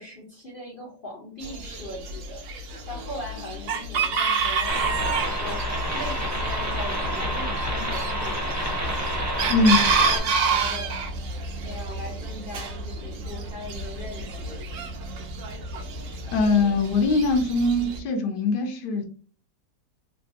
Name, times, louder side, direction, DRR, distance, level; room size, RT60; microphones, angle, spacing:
voice 1, 0.0-2.4 2.9-8.7 9.6-11.0 11.6-14.6, left 1 dB, 55° left, -4 dB, 0.5 m, -39 dB
Chicken rooster, 1.4-18.0, right 4 dB, 70° right, 0.8 m, -29 dB
sound 1, 4.7-10.2, equal, 15° right, 0.6 m, -28 dB
voice 2, 9.5-9.9 16.3-19.1, left 3 dB, 75° left, 5 dB, 1.2 m, -22 dB
3.3 x 2.2 x 2.7 m, 0.38 s
omnidirectional pair, 1.9 m